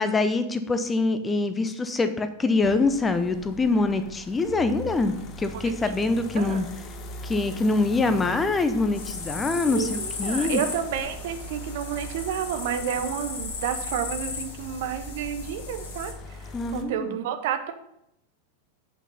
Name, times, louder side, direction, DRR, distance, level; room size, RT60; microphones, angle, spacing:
voice 1, 0.0-6.7 7.2-10.6 16.5-17.1, left 3 dB, 15° left, 10 dB, 0.7 m, -24 dB
sound 1, 2.6-16.8, left 2 dB, 30° left, 1.0 m, -41 dB
voice 2, 5.5-6.0 6.3-6.7 9.7-17.7, right 9 dB, 50° right, 8 dB, 0.9 m, -31 dB
sound 2, 8.9-16.1, left 4 dB, 55° left, 1.8 m, -36 dB
8.3 x 5.7 x 5.5 m, 0.79 s
figure-of-eight pair, 90°, 0 cm